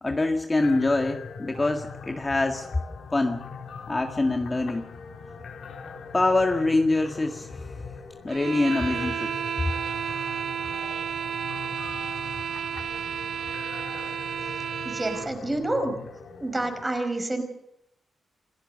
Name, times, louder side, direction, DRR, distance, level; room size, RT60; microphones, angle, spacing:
voice 1, 0.0-2.7 3.1-3.4 3.9-4.8 6.1-7.7 8.2-9.3, left 2 dB, 20° left, 4 dB, 1.7 m, -24 dB
sound 1, 0.6-16.8, left 5 dB, 75° left, 4.5 m, -41 dB
sound 2, 8.3-15.3, right 8 dB, 80° right, 1.4 m, -32 dB
voice 2, 14.8-15.9 16.4-17.4, right 2 dB, 15° right, 6 dB, 5.0 m, -28 dB
28.0 x 17.0 x 6.8 m, 0.80 s
wide cardioid pair, 130°, 0 cm